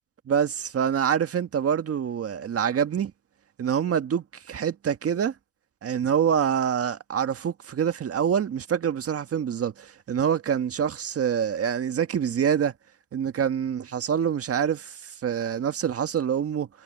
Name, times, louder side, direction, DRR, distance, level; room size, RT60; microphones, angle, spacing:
voice 1, 0.3-3.1 3.6-5.3 5.8-12.7 13.1-16.7, right 8 dB, 50° right, 1.6 m, -26 dB
cardioid pair, 90°, 30 cm